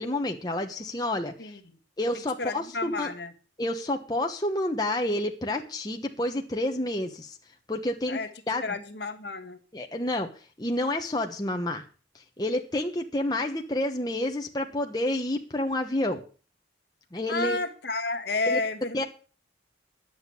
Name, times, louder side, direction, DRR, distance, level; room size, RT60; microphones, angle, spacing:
voice 1, 0.0-1.3 2.0-3.1 3.6-7.4 7.7-8.2 8.5-8.8 9.7-10.3 10.6-11.8 12.4-16.2 17.1-17.6 18.5-18.6 18.9-19.0, left 1 dB, 20° left, 2 dB, 1.1 m, -29 dB
voice 2, 2.4-3.3 8.1-8.3 8.6-9.6 17.3-19.0, left 3 dB, 60° left, 8 dB, 1.5 m, -31 dB
10.5 x 7.9 x 8.3 m, 0.38 s
head